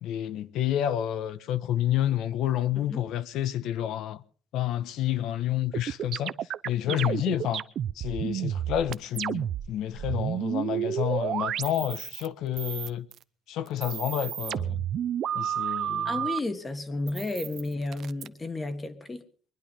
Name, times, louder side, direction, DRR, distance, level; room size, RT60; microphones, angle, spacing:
voice 1, 0.0-4.2 4.5-6.3 6.6-7.6 7.9-13.1 13.5-14.9 15.3-16.1, left 11 dB, 75° left, 1.1 m, -29 dB
sound 1, 5.7-9.7 9.9-12.3 12.6-13.2 13.7-16.4 17.1-18.3, right 10 dB, 50° right, 0.7 m, -31 dB
voice 2, 16.0-19.2, left 2 dB, 15° left, 1.5 m, -32 dB
22.5 x 10.5 x 5.6 m
cardioid pair, 165°, 0 cm